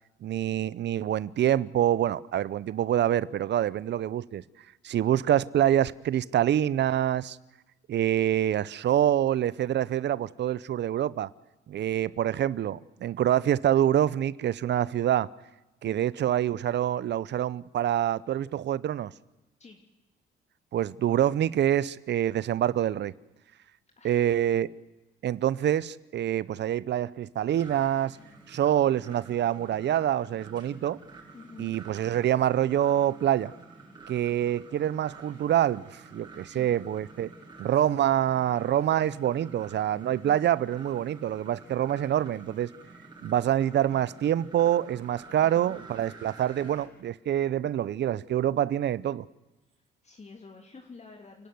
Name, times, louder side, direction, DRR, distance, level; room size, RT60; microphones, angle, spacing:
voice 1, 0.2-4.4 4.8-7.4 7.9-11.3 11.7-15.3 15.8-19.1 20.7-23.1 24.0-24.7 25.2-28.2 28.5-31.0 31.6-33.5 34.1-37.3 37.6-42.7 43.2-49.3, right 11 dB, 60° right, 0.7 m, -26 dB
voice 2, 24.0-24.4 31.3-31.8 36.5-36.7 40.1-40.4 45.4-45.8 50.0-51.5, left 4 dB, 35° left, 3.0 m, -49 dB
sound 1, 27.5-46.9, right 3 dB, 20° right, 6.9 m, -50 dB
29.5 x 11.5 x 9.4 m
cardioid pair, 90°, 20 cm